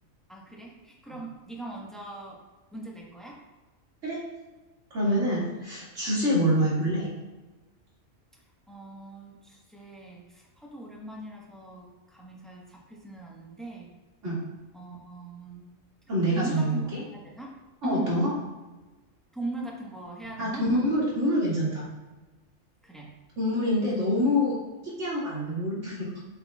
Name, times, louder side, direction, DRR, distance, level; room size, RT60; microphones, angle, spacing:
voice 1, 0.3-2.4 2.7-3.4 8.7-13.9 14.7-15.6 16.3-17.5 17.8-18.2 19.3-20.6 22.8-23.1, right 2 dB, ahead, -3 dB, 1.0 m, -39 dB
voice 2, 4.9-7.1 14.2-14.4 16.1-17.0 17.8-18.3 20.4-21.9 23.4-24.6 24.8-26.2, equal, 60° right, -7 dB, 2.6 m, -26 dB
7.7 x 6.8 x 2.3 m, 1.2 s
omnidirectional pair, 1.4 m